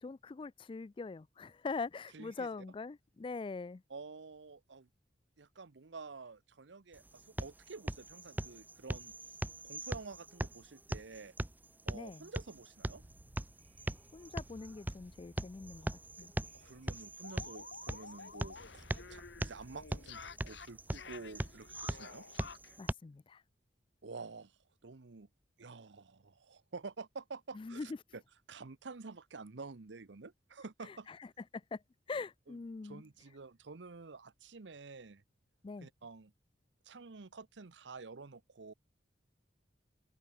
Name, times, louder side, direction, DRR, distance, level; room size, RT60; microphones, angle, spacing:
voice 1, 0.0-3.8 11.9-12.3 14.1-16.3 22.8-23.4 27.5-28.0 31.1-31.3 31.5-31.8 32.1-33.0 35.6-35.9, left 4 dB, 30° left, 0.3 m, -43 dB
voice 2, 2.1-2.5 3.9-4.9 5.4-9.4 9.6-11.3 11.8-13.0 16.5-18.8 19.1-22.2 24.0-25.3 25.6-28.2 28.5-31.1 32.5-35.2 35.8-36.3 36.8-38.7, right 4 dB, 90° right, 0.8 m, -49 dB
sound 1, 6.9-22.9, right 1 dB, 10° right, 0.6 m, -41 dB
sound 2, 12.9-21.9, right 1 dB, 35° right, 1.8 m, -61 dB
sound 3, 15.8-15.9 16.2-16.3 16.6-22.8, left 5 dB, 80° left, 1.3 m, -51 dB
head